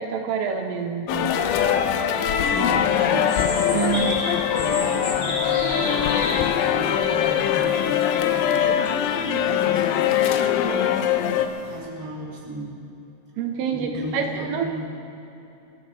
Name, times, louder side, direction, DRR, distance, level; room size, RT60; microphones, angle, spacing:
voice 1, 0.0-1.4 3.7-4.3 13.4-14.7, right 6 dB, 75° right, 3 dB, 3.6 m, -27 dB
sound 1, 1.1-11.5, left 9 dB, 80° left, 3.0 m, -22 dB
sound 2, 2.1-11.8, left 1 dB, 25° left, 1.0 m, -36 dB
voice 2, 2.4-3.3 3.7-4.1 4.3-7.9 8.3-11.1 11.3-12.7 13.7-14.8, right 2 dB, 10° right, -5 dB, 1.9 m, -36 dB
28.5 x 13.0 x 3.5 m, 2.9 s
omnidirectional pair, 6.0 m